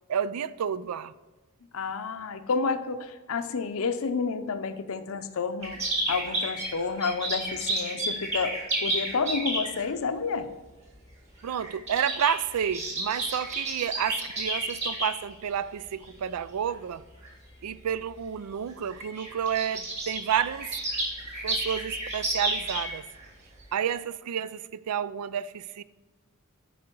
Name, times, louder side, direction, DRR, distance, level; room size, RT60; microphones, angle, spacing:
voice 1, 0.1-1.1 11.4-17.0 17.6-20.8 21.4-23.1 23.7-25.8, right 8 dB, 90° right, 0.4 m, -30 dB
voice 2, 1.7-5.8 6.1-8.5 8.8-10.5, left 5 dB, 65° left, 0.6 m, -30 dB
sound 1, 5.6-9.9 10.9-11.1 11.4-15.1 15.8-16.1 16.7-16.8 17.1-17.3 18.2-18.3 18.6-18.7 18.8-23.3 23.6-23.7, right 2 dB, 30° right, 2.5 m, -31 dB
11.0 x 5.1 x 4.5 m
head